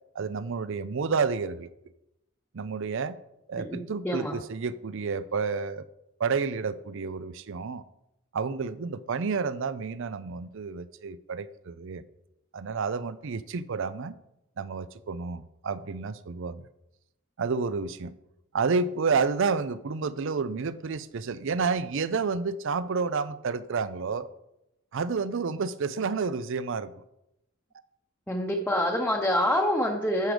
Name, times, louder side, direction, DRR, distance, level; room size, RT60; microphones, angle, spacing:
voice 1, 0.1-1.7 2.5-3.2 3.5-5.8 6.2-7.8 8.3-12.0 12.5-14.2 14.6-16.7 17.4-18.1 18.5-24.3 24.9-26.9, right 5 dB, 65° right, 0.5 m, -30 dB
voice 2, 3.6-4.4 28.3-30.3, left 1 dB, 5° left, 0.8 m, -26 dB
9.6 x 6.4 x 5.1 m
head